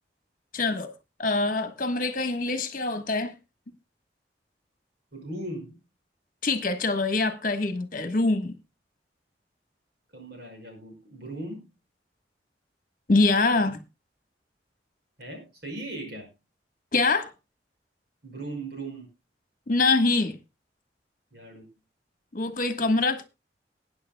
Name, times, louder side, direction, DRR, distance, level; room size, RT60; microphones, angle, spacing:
voice 1, 0.5-0.9 1.2-3.3 6.4-8.5 13.1-13.8 16.9-17.3 19.7-20.4 22.3-23.2, left 3 dB, 50° left, 1.4 m, -24 dB
voice 2, 5.1-5.8 10.1-11.7 15.2-16.3 18.2-19.1 21.3-21.7, right 2 dB, 60° right, 5.4 m, -38 dB
21.0 x 9.6 x 2.2 m
head